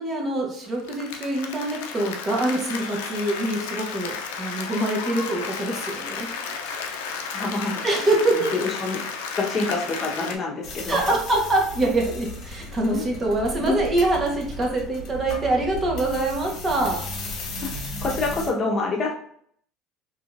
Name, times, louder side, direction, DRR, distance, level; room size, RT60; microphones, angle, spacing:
voice 1, 0.0-6.3 7.8-8.7 10.9-17.0, right 2 dB, 25° right, -1 dB, 1.1 m, -24 dB
Applause, 0.7-10.4, left 5 dB, 90° left, 0.4 m, -33 dB
voice 2, 7.3-7.9 8.3-9.0 9.4-11.0 12.9-13.0 13.5-13.8 17.6-17.7 18.0-19.1, left 3 dB, 35° left, -1 dB, 1.1 m, -27 dB
sound 1, 10.6-18.5, left 1 dB, 60° left, 1.1 m, -35 dB
3.6 x 2.9 x 2.5 m, 0.63 s
supercardioid pair, 110°, 0 cm